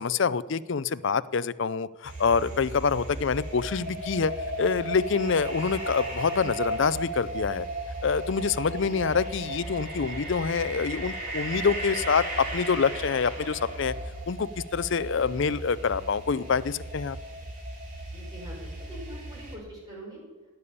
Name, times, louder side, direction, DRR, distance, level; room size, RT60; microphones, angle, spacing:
voice 1, 0.0-4.3 4.6-7.7 8.0-13.9 14.3-17.2, left 5 dB, 55° left, 16 dB, 0.5 m, -26 dB
sound 1, 2.0-19.6, right 1 dB, 40° right, 3.4 m, -36 dB
voice 2, 18.1-20.5, right 1 dB, 20° right, -3 dB, 6.2 m, -44 dB
18.0 x 6.9 x 8.6 m, 1.2 s
head